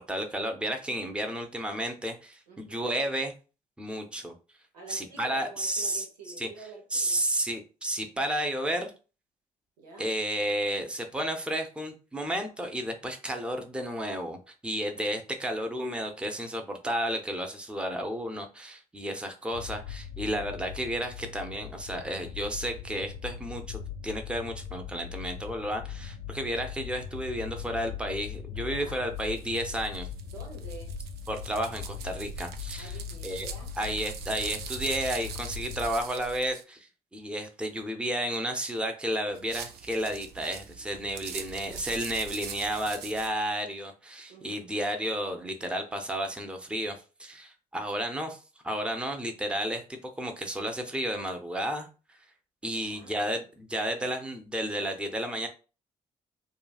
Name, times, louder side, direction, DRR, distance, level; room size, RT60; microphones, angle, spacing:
voice 1, 0.0-3.3 3.8-4.3 4.9-6.0 6.4-6.5 6.9-8.9 10.0-30.1 31.3-33.0 33.2-33.5 33.8-48.4 48.6-49.8 50.2-52.2 52.6-55.5, equal, 5° right, 0.7 m, -32 dB
voice 2, 2.5-2.9 4.7-7.2 9.8-10.1 28.5-29.1 30.3-30.9 32.8-33.7 44.3-44.8 52.7-53.1, right 3 dB, 80° right, 0.9 m, -48 dB
sound 1, 19.5-35.9, left 8 dB, 75° left, 0.4 m, -40 dB
sound 2, 29.2-36.6 39.3-43.3, right 8 dB, 55° right, 0.5 m, -42 dB
3.8 x 2.3 x 2.4 m
figure-of-eight pair, 45°, 20 cm